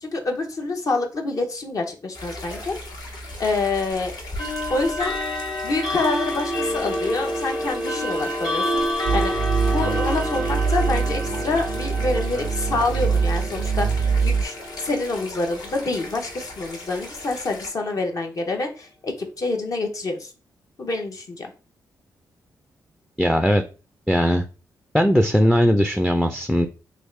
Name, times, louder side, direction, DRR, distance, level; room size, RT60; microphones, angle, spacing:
voice 1, 0.0-2.8 3.4-4.1 4.7-5.1 5.6-9.3 9.6-20.3 20.8-21.5, left 3 dB, 50° left, 3 dB, 0.7 m, -27 dB
sound 1, 2.1-17.7, left 2 dB, 70° left, 1.1 m, -39 dB
sound 2, 2.5-2.7 4.4-17.2, equal, 85° left, 1.5 m, -29 dB
sound 3, 9.1-14.4, right 5 dB, 75° right, 0.3 m, -24 dB
voice 2, 23.2-23.6 24.1-24.4 24.9-26.7, equal, 5° left, 6 dB, 0.4 m, -19 dB
3.4 x 2.4 x 3.2 m, 0.34 s
cardioid pair, 70°, 7 cm